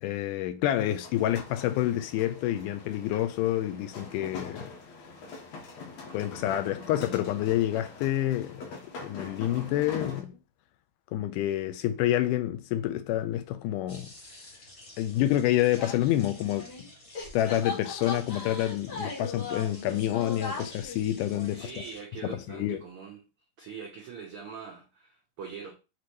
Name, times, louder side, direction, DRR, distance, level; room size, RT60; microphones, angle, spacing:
voice 1, 0.0-4.7 6.1-10.4 11.1-14.1 15.0-16.9 17.3-21.7 22.2-22.8, left 13 dB, 90° left, 2.1 m, -28 dB
sound 1, 1.0-10.2, left 4 dB, 65° left, 2.2 m, -43 dB
sound 2, 13.9-22.0, left 1 dB, 35° left, 1.8 m, -51 dB
sound 3, 15.8-16.9 17.1-21.9, left 4 dB, 50° left, 1.3 m, -39 dB
voice 2, 21.5-23.2 23.6-25.7, right 5 dB, 70° right, 1.3 m, -42 dB
5.9 x 3.1 x 2.7 m
omnidirectional pair, 3.6 m